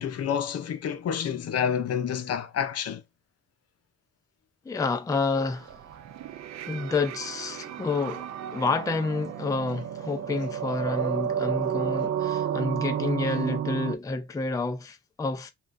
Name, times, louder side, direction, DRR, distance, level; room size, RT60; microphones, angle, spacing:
voice 1, 0.0-3.0, left 8 dB, 55° left, 0.7 m, -29 dB
voice 2, 4.7-5.8 6.7-15.5, left 3 dB, 10° left, 0.5 m, -29 dB
sound 1, 5.4-13.9, right 9 dB, 60° right, 0.5 m, -31 dB
5.5 x 2.4 x 2.6 m
cardioid pair, 90°, 30 cm